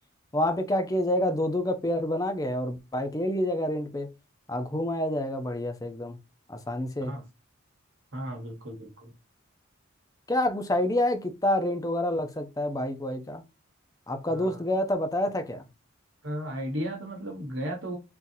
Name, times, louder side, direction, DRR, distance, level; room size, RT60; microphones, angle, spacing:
voice 1, 0.3-4.1 4.5-6.2 6.5-7.1 10.3-13.4 14.1-15.6, left 1 dB, 15° left, 0.5 m, -28 dB
voice 2, 8.1-9.1 14.3-14.6 16.2-18.0, equal, 65° right, 1.2 m, -35 dB
3.8 x 2.8 x 2.6 m
head